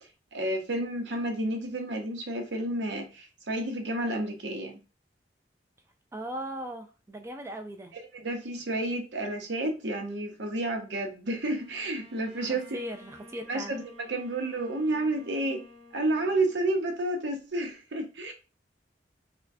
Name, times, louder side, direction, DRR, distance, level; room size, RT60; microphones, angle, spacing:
voice 1, 0.3-4.8 8.1-12.7 13.5-15.6 15.9-18.3, right 1 dB, 85° right, 3 dB, 0.8 m, -30 dB
voice 2, 6.1-7.9 12.5-13.8, equal, 15° right, 5 dB, 0.4 m, -38 dB
Bowed string instrument, 11.5-17.2, left 1 dB, 45° right, 1.7 m, -52 dB
4.3 x 2.2 x 2.6 m, 0.32 s
head